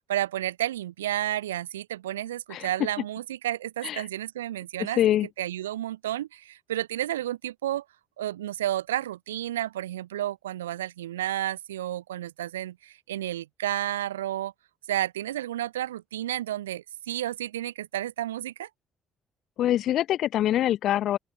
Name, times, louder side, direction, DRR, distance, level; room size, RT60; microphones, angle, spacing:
voice 1, 0.1-5.0 5.4-7.8 8.2-14.5 14.9-18.7, right 13 dB, 75° right, 0.5 m, -31 dB
voice 2, 5.0-5.3 19.6-21.2, left 12 dB, 55° left, 1.0 m, -24 dB
open air
figure-of-eight pair, 45°, 0 cm